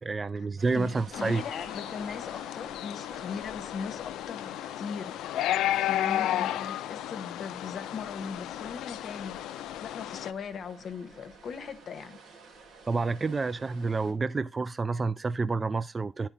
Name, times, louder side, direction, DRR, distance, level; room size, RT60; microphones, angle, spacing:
voice 1, 0.0-1.4 12.9-16.3, right 4 dB, 35° right, 0.3 m, -29 dB
sound 1, 0.6-14.1, right 4 dB, 80° right, 2.4 m, -53 dB
voice 2, 0.7-5.2 5.7-12.2, left 6 dB, 65° left, 0.8 m, -39 dB
sound 2, 1.1-10.3, left 12 dB, 85° left, 0.3 m, -33 dB
10.0 x 4.4 x 3.6 m
supercardioid pair, 65°, 0 cm